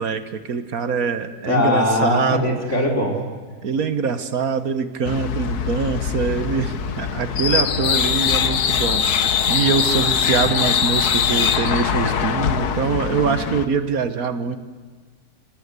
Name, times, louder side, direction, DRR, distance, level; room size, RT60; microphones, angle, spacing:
voice 1, 0.0-2.6 3.6-9.0 9.5-14.6, right 6 dB, 70° right, 11 dB, 1.6 m, -23 dB
voice 2, 1.5-3.2, left 1 dB, 50° left, 1 dB, 4.5 m, -20 dB
sound 1, 5.0-13.7, left 7 dB, 85° left, 1.6 m, -22 dB
26.0 x 18.5 x 8.2 m, 1.5 s
omnidirectional pair, 1.6 m